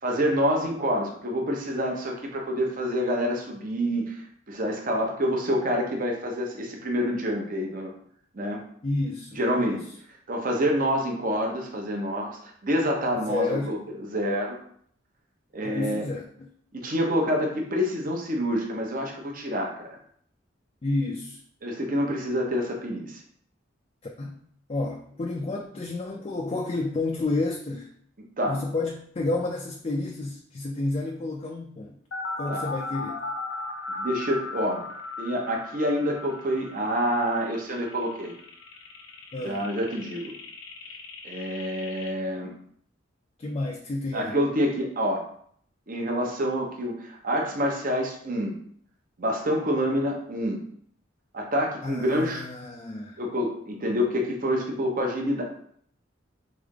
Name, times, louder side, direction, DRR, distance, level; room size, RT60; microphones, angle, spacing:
voice 1, 0.0-7.9 8.3-8.6 9.4-9.8 10.3-14.6 15.5-16.0 16.7-19.9 21.6-23.2 28.4-28.6 32.5-32.7 33.9-34.8 35.2-38.3 39.4-40.3 41.2-42.5 44.1-45.3 45.9-48.5 49.2-50.6 51.3-52.4 53.2-55.4, equal, 45° right, 0 dB, 0.8 m, -27 dB
voice 2, 8.8-9.9 13.3-13.8 15.6-16.5 20.8-21.4 24.2-24.4 24.7-27.9 28.5-32.0 32.4-33.2 39.3-39.7 43.4-44.4 51.8-53.2, left 2 dB, 30° left, 1 dB, 0.4 m, -30 dB
sound 1, 32.1-42.1, left 3 dB, 70° left, 0.7 m, -37 dB
3.8 x 3.4 x 3.7 m, 0.64 s
head